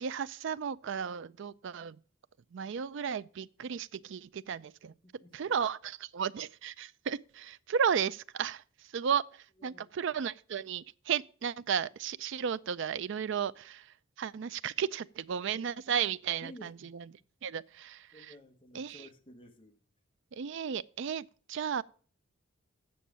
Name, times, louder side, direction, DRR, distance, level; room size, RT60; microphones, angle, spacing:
voice 1, 0.0-2.0 2.5-4.9 5.3-17.1 17.4-18.3 18.7-19.1 20.3-21.8, right 7 dB, 60° right, 0.4 m, -34 dB
voice 2, 5.0-5.3 9.6-10.2 16.4-16.9 18.1-19.8, left 1 dB, 25° left, 1.1 m, -53 dB
8.5 x 6.4 x 7.2 m
head